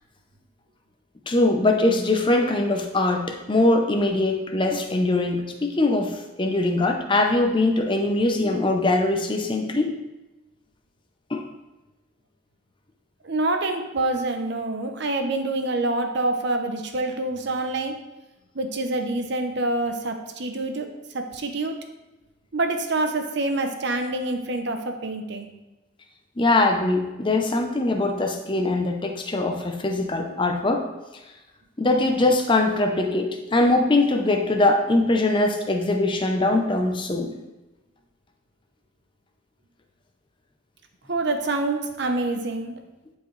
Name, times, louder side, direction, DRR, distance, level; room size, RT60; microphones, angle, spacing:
voice 1, 1.3-9.9 11.3-11.4 26.4-30.8 31.8-37.3, left 2 dB, 25° left, 3 dB, 0.7 m, -22 dB
voice 2, 13.2-17.9 18.5-20.9 21.1-21.8 22.5-25.5 41.1-42.7, right 2 dB, 60° right, 5 dB, 0.8 m, -26 dB
10.5 x 4.7 x 3.3 m, 1.0 s
head